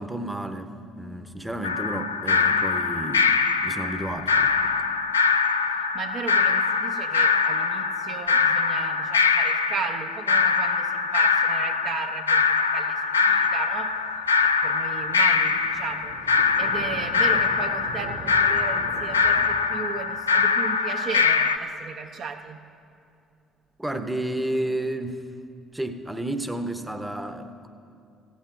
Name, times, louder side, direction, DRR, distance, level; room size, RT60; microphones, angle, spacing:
voice 1, 0.0-3.3 3.6-4.7 23.8-25.3 25.7-27.7, right 1 dB, 10° right, 9 dB, 0.8 m, -31 dB
sound 1, 1.6-21.6, left 5 dB, 85° left, 0.3 m, -23 dB
voice 2, 5.7-14.0 14.4-22.6, right 5 dB, 55° right, 4 dB, 0.6 m, -35 dB
Thunder And Birds, 13.3-19.5, right 2 dB, 75° right, 1.4 m, -41 dB
16.0 x 13.5 x 2.5 m, 2.5 s
figure-of-eight pair, 45°, 0 cm